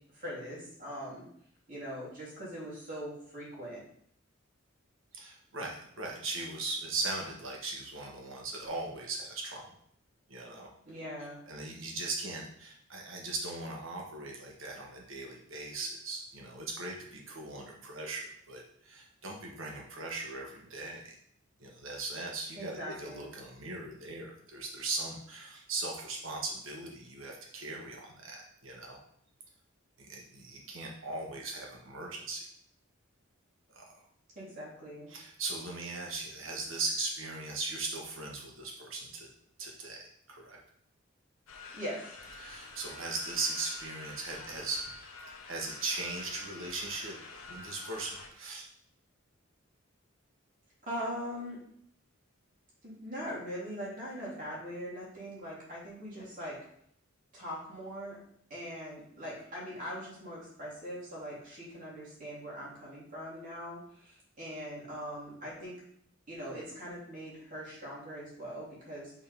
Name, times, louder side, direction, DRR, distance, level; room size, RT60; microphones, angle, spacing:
voice 1, 0.1-1.2 1.7-3.8 10.9-11.4 22.5-23.3 34.3-35.1 41.7-42.2 50.8-51.6 52.8-56.6 57.3-58.2 58.5-65.7 66.3-69.1, equal, 40° right, -7 dB, 2.8 m, -41 dB
voice 2, 5.1-9.8 10.3-10.7 11.5-21.1 21.6-29.0 30.0-32.4 33.7-33.9 35.1-39.3 39.6-40.0 40.3-40.6 42.4-45.2 45.5-47.2 47.5-48.6, right 3 dB, 70° right, -1 dB, 1.5 m, -39 dB
sound 1, 41.5-48.3, left 4 dB, 85° left, 0.9 m, -47 dB
5.3 x 3.8 x 5.2 m, 0.67 s
head